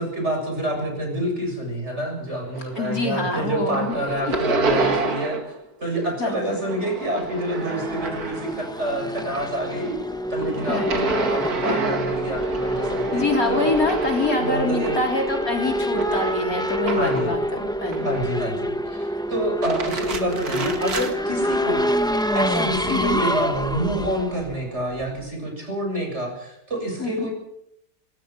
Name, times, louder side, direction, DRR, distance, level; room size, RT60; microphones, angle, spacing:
voice 1, 0.0-5.5 5.8-10.0 10.3-13.7 14.4-15.0 16.9-17.4 18.0-21.9 22.3-27.3, right 1 dB, 40° right, 2 dB, 7.8 m, -27 dB
sound 1, 2.5-3.3 3.5-5.6 5.8-8.7 9.1-17.4 17.9-18.6 19.4-21.1, right 3 dB, 60° right, 2.5 m, -29 dB
voice 2, 2.8-4.0 6.2-6.6 10.7-11.1 13.1-18.1 22.9-23.2 27.0-27.3, left 2 dB, 55° left, 2 dB, 4.2 m, -25 dB
Race car auto racing / Accelerating revving vroom, 7.1-25.3, equal, 5° left, 0.8 m, -27 dB
26.0 x 19.5 x 6.0 m, 0.78 s
omnidirectional pair, 1.8 m